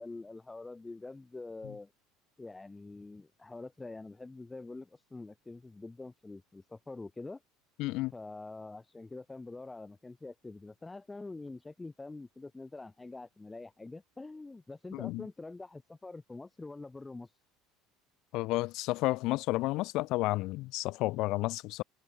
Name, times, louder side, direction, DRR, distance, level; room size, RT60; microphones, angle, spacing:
voice 1, 0.0-1.9 2.4-7.4 8.1-17.3, left 3 dB, 15° left, 2.8 m, -45 dB
voice 2, 7.8-8.1 14.9-15.3 18.3-21.8, left 20 dB, 65° left, 0.7 m, -31 dB
supercardioid pair, 90°, 0 cm